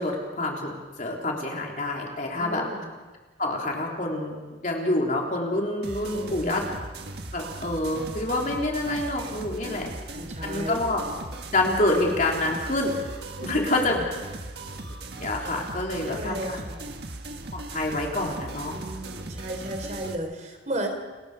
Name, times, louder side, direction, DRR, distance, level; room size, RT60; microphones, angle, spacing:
voice 1, 0.0-2.7 3.4-4.4 4.6-6.6 7.3-9.9 10.4-11.0 11.5-13.0 13.4-14.0 15.2-16.6 17.5-18.8, left 2 dB, 45° left, -1 dB, 3.7 m, -27 dB
voice 2, 2.4-2.9 6.1-6.7 10.1-10.8 13.4-14.1 16.1-16.9 18.7-20.9, right 1 dB, 40° right, 4 dB, 3.6 m, -34 dB
sound 1, 5.8-20.1, right 2 dB, 60° right, 1.7 m, -38 dB
30.0 x 21.5 x 5.1 m, 1.3 s
head